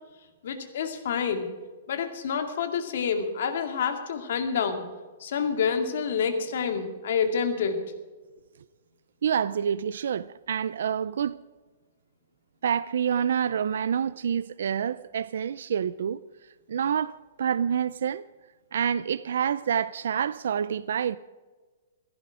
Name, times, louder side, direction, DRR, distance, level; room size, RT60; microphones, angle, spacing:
voice 1, 0.4-1.5 1.9-4.8 5.2-7.8, left 6 dB, 55° left, 2.2 m, -28 dB
voice 2, 9.2-11.4 12.6-16.2 16.7-18.3 18.7-21.2, right 8 dB, 65° right, 0.4 m, -27 dB
16.0 x 14.0 x 4.9 m
hypercardioid pair, 175°, 0 cm